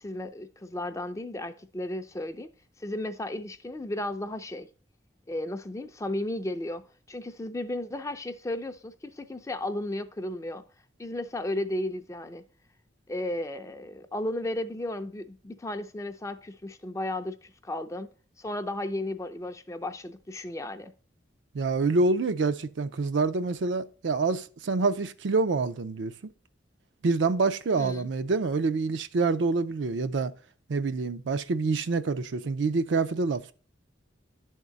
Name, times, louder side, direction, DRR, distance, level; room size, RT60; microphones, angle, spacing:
voice 1, 0.0-2.5 2.8-4.7 5.3-10.6 11.0-12.4 13.1-18.1 18.4-20.9 27.7-28.1, left 1 dB, 15° left, 0.4 m, -34 dB
voice 2, 21.5-26.3 27.0-30.3 30.7-33.5, right 3 dB, 75° right, 0.5 m, -26 dB
10.5 x 3.7 x 3.9 m
head